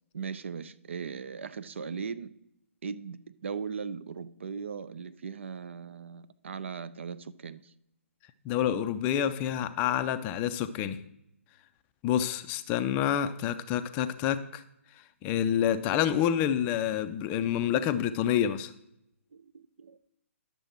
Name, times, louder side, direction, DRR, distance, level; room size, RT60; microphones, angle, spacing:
voice 1, 0.1-2.3 2.8-7.7 19.3-20.0, right 6 dB, 55° right, 0.5 m, -38 dB
voice 2, 8.4-11.0 12.0-14.6 15.2-18.7, left 10 dB, 20° left, 0.4 m, -28 dB
11.0 x 6.8 x 4.4 m
figure-of-eight pair, 135°, 8 cm